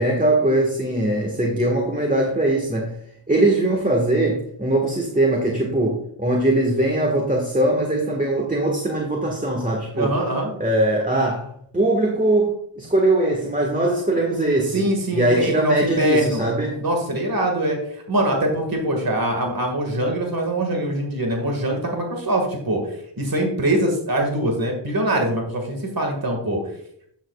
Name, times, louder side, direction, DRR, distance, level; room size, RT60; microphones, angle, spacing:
voice 1, 0.0-2.9 3.3-10.1 10.6-14.9 15.1-16.8, right 1 dB, 15° right, -1 dB, 1.5 m, -21 dB
voice 2, 9.9-10.5 14.7-16.4 16.8-22.8 23.2-26.6, right 1 dB, 45° right, 2 dB, 1.9 m, -23 dB
10.0 x 7.4 x 2.4 m, 0.68 s
cardioid pair, 40°, 50 cm